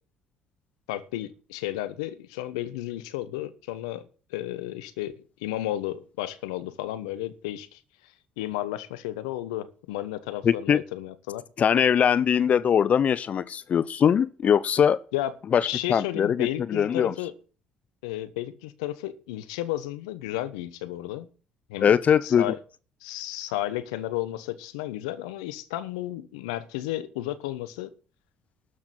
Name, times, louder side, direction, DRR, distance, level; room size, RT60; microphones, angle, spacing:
voice 1, 0.9-5.1 5.4-7.8 8.4-11.4 15.1-15.3 15.6-17.3 18.0-21.3 21.7-21.9 22.2-22.6 23.0-27.9, left 14 dB, 75° left, 1.0 m, -33 dB
voice 2, 10.4-10.8 11.6-15.0 15.5-17.1 21.8-22.5, left 8 dB, 45° left, 0.5 m, -22 dB
13.0 x 6.4 x 7.5 m
hypercardioid pair, 55°, 3 cm